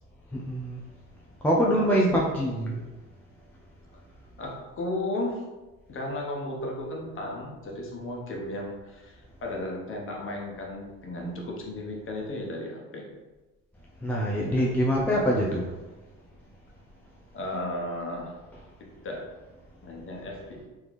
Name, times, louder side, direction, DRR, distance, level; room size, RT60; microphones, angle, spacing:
voice 1, 0.3-0.8 1.4-2.8 14.0-15.7 18.5-18.6, equal, 5° left, -3 dB, 0.4 m, -24 dB
voice 2, 2.1-2.5 4.4-5.4 5.9-13.1 17.3-18.3 18.8-19.3 19.8-20.6, left 1 dB, 30° left, 0 dB, 1.0 m, -35 dB
3.7 x 3.4 x 3.2 m, 1.1 s
figure-of-eight pair, 60°, 44 cm